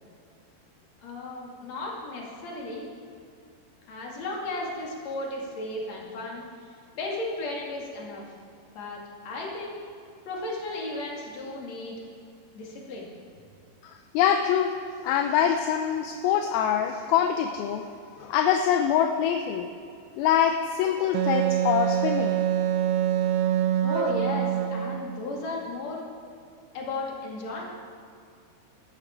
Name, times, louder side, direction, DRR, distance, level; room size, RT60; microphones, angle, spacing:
voice 1, 1.0-2.8 3.9-6.5 6.9-8.2 8.7-9.0 9.2-9.8 10.2-12.0 12.5-13.1 23.8-26.1 26.7-27.6, left 2 dB, 45° left, -3 dB, 3.3 m, -34 dB
voice 2, 13.8-14.7 15.0-17.8 18.2-19.7 20.2-22.4, left 9 dB, 80° left, 6 dB, 2.3 m, -24 dB
Wind instrument woodwind instrument, 21.1-25.2, right 10 dB, 85° right, 2.7 m, -25 dB
17.0 x 14.0 x 4.6 m, 2.4 s
omnidirectional pair, 4.6 m